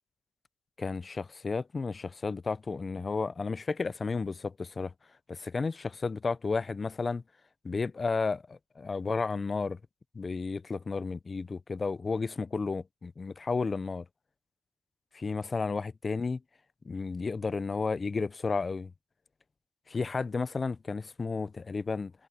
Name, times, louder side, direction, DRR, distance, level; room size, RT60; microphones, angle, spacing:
voice 1, 0.8-4.9 5.3-7.2 7.6-9.8 10.1-14.1 15.1-16.4 16.8-18.9 19.9-22.1, left 4 dB, 30° left, 0.6 m, -32 dB
cardioid pair, 100°, 0 cm